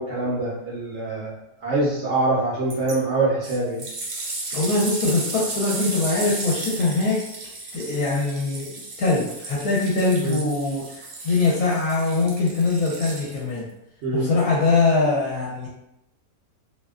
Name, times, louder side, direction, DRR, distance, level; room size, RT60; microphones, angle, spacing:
voice 1, 0.0-1.3 1.6-3.8 10.2-10.4 14.0-14.3, right 2 dB, 60° right, -8 dB, 0.8 m, -24 dB
sound 1, 2.7-2.9 3.4-13.6 14.4-14.5, right 2 dB, 80° right, 1.2 m, -34 dB
voice 2, 4.5-7.2 7.7-10.8 11.2-13.6 14.1-15.7, left 3 dB, 70° left, -5 dB, 1.0 m, -22 dB
2.7 x 2.1 x 2.3 m, 0.85 s
omnidirectional pair, 1.6 m